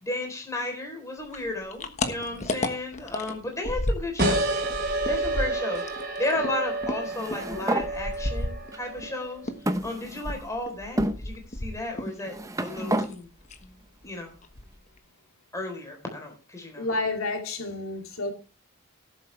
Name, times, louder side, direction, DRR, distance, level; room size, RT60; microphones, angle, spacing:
voice 1, 0.0-4.5 5.1-9.5 9.8-12.3 12.6-13.3 14.0-14.3 15.5-16.9, left 2 dB, 15° left, 3.7 m, -33 dB
sound 1, 1.3-4.4 4.6-9.1 9.4-12.2 12.4-13.1 13.4-13.7 14.0-14.1 14.4-15.0, left 1 dB, 35° left, 1.3 m, -33 dB
sound 2, 4.2-9.4, right 2 dB, 50° right, 3.3 m, -29 dB
sound 3, 7.1-7.9 8.7-8.8 9.7-10.5 11.0-11.2 12.1-13.1, right 1 dB, 15° right, 0.8 m, -29 dB
voice 2, 16.8-18.3, left 2 dB, 75° left, 2.7 m, -30 dB
18.5 x 7.8 x 3.3 m
head